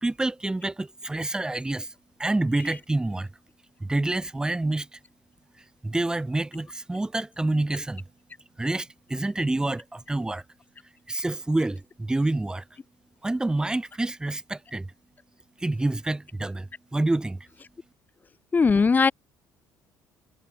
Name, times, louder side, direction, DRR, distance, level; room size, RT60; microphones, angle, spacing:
voice 1, 0.0-1.9 2.2-3.3 3.8-4.9 5.8-8.0 8.6-10.4 11.1-12.6 13.2-14.9 15.6-17.4, right 2 dB, 10° right, 2.9 m, -27 dB
voice 2, 18.5-19.1, left 4 dB, 25° left, 3.4 m, -19 dB
cardioid pair, 110°, 7 cm